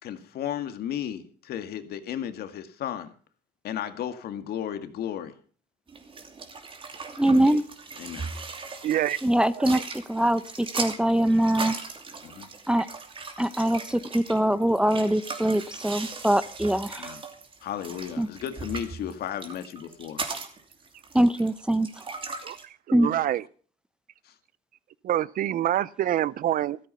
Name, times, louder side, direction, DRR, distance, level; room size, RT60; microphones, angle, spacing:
voice 1, 0.0-3.1 3.6-5.3 8.0-8.3 12.2-12.5 17.0-17.2 17.6-20.2 23.0-23.3 24.3-24.4, left 10 dB, 70° left, 1.9 m, -34 dB
sound 1, 5.9-22.6, right 4 dB, 30° right, 2.8 m, -38 dB
voice 2, 7.2-7.6 9.2-9.8 10.1-11.8 12.7-12.9 13.4-17.1 18.2-18.3 21.1-21.9 22.9-23.1, right 1 dB, 5° right, 0.7 m, -23 dB
voice 3, 8.8-9.2 9.6-9.8 22.4-23.4 25.0-26.8, right 12 dB, 55° right, 0.6 m, -26 dB
14.0 x 13.0 x 5.6 m
cardioid pair, 110°, 17 cm